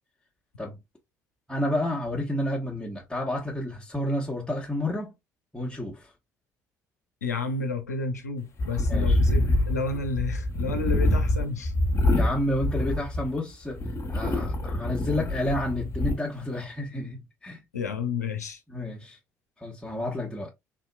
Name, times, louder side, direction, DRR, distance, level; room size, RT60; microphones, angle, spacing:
voice 1, 1.5-5.1 5.5-6.1 8.9-9.2 12.1-17.6 18.7-19.2 19.6-20.5, left 1 dB, 10° left, 1.1 m, -30 dB
voice 2, 7.2-11.7 17.7-18.6, left 4 dB, 85° left, 0.4 m, -31 dB
sound 1, 8.6-13.4 13.8-16.2, left 1 dB, 35° left, 1.1 m, -25 dB
3.7 x 2.8 x 2.3 m
figure-of-eight pair, 50°, 9 cm